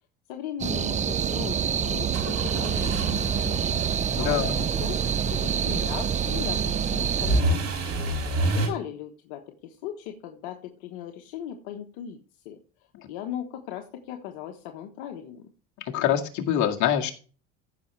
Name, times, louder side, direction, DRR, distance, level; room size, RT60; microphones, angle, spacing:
voice 1, 0.3-3.6 4.2-5.0 5.2-7.9 8.5-12.2 12.4-12.6 13.1-15.5, left 10 dB, 80° left, 4 dB, 1.3 m, -38 dB
sound 1, 0.6-7.4, right 8 dB, 25° right, 0.4 m, -27 dB
sound 2, 2.1-8.7, right 2 dB, 50° right, 5.0 m, -29 dB
voice 2, 4.2-4.5 15.9-17.1, left 10 dB, 65° left, 3 dB, 2.0 m, -24 dB
15.0 x 6.0 x 3.3 m, 0.38 s
supercardioid pair, 95°, 32 cm